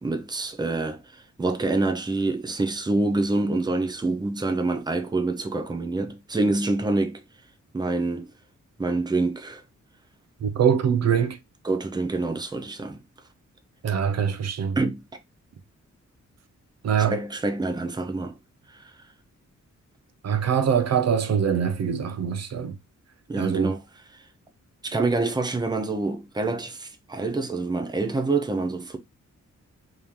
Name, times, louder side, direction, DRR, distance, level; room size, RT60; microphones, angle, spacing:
voice 1, 0.0-7.2 7.7-8.3 8.8-9.6 11.6-13.0 14.8-15.0 17.1-18.4 18.8-18.9 23.3-23.8 24.8-29.0, right 3 dB, 15° right, 0.6 m, -26 dB
voice 2, 10.4-11.4 13.8-14.8 16.8-17.2 20.2-22.8 23.4-23.7, right 7 dB, 60° right, 0.6 m, -23 dB
3.2 x 2.8 x 3.5 m
wide cardioid pair, 135°, 30 cm